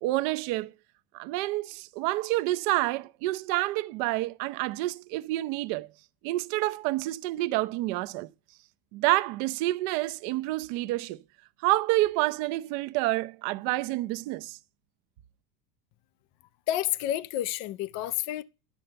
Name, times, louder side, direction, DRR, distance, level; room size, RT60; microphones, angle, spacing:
voice 1, 0.0-0.7 1.1-5.9 6.2-8.3 8.9-11.2 11.6-14.6, right 18 dB, 50° right, 0.6 m, -28 dB
voice 2, 16.7-18.4, left 13 dB, 40° left, 0.4 m, -29 dB
11.0 x 4.4 x 6.8 m
cardioid pair, 160°, 46 cm